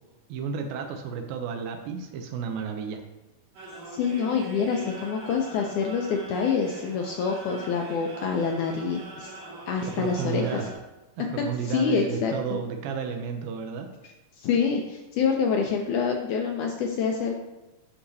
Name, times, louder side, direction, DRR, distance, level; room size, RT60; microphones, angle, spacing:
voice 1, 0.3-3.0 9.8-10.7 11.2-13.9, right 6 dB, 90° right, 4 dB, 2.5 m, -32 dB
sound 1, 3.6-10.7, right 2 dB, 65° right, 3.2 m, -43 dB
voice 2, 4.0-9.3 9.7-10.6 11.6-12.6 14.4-17.3, left 5 dB, 80° left, 1 dB, 1.8 m, -26 dB
11.5 x 4.9 x 2.7 m, 1.0 s
omnidirectional pair, 4.0 m